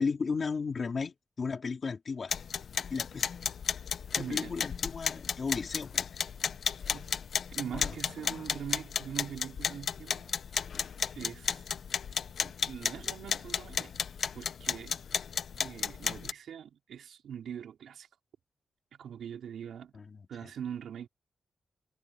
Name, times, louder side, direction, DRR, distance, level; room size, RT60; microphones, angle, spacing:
voice 1, 0.0-2.3 2.9-3.3 4.1-6.1 7.7-7.9 19.9-20.2, left 5 dB, 35° left, 3.2 m, -34 dB
sound 1, 2.3-16.3, left 7 dB, 60° left, 1.0 m, -34 dB
voice 2, 4.2-4.6 6.9-7.1 7.5-10.3 11.1-11.6 12.4-13.9 14.3-15.0 15.6-18.1 18.9-20.0 20.3-21.1, right 8 dB, 85° right, 5.2 m, -42 dB
wide cardioid pair, 165°, 0 cm